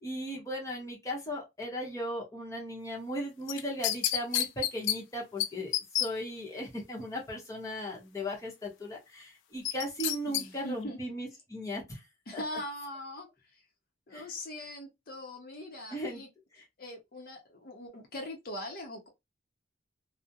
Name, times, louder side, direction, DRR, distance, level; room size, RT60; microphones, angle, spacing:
voice 1, 0.0-12.0 12.3-12.4 14.1-14.3 15.9-16.2 16.5-16.6, equal, 15° left, 0.8 m, -37 dB
sound 1, 3.5-5.0 5.4-5.5 5.7-6.1 9.6-10.4 10.8-10.9, left 11 dB, 90° left, 0.3 m, -29 dB
voice 2, 10.3-11.0 12.3-13.6 14.1-16.3 16.8-19.1, left 1 dB, 50° left, 0.7 m, -41 dB
2.3 x 2.1 x 2.6 m
head